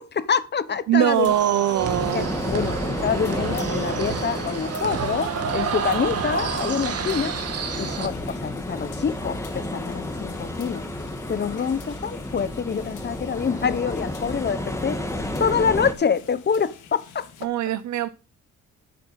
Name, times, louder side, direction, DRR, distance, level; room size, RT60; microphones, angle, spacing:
voice 1, 0.0-1.3 2.1-2.8 3.0-7.3 7.7-10.8 11.3-15.0 15.4-17.3, left 6 dB, 35° left, 1.1 m, -26 dB
voice 2, 0.9-2.3 17.4-18.1, right 12 dB, 70° right, 0.7 m, -22 dB
sound 1, 1.0-17.5, left 8 dB, 85° left, 2.6 m, -47 dB
sound 2, 1.3-8.1, right 6 dB, 55° right, 1.9 m, -29 dB
sound 3, 1.8-15.9, left 1 dB, 10° left, 2.1 m, -31 dB
9.9 x 7.8 x 5.4 m
cardioid pair, 90°, 30 cm